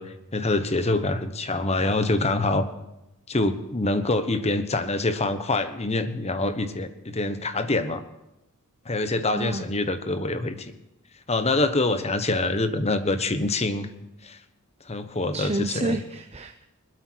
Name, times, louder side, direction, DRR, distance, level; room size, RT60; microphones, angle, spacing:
voice 1, 0.0-2.7 3.3-8.0 8.8-10.7 11.3-13.9 14.2-14.4 14.8-16.0, left 2 dB, 30° left, 9 dB, 1.2 m, -25 dB
voice 2, 9.3-9.7 15.3-16.7, right 2 dB, 30° right, 6 dB, 0.8 m, -30 dB
21.0 x 12.5 x 4.7 m, 0.90 s
head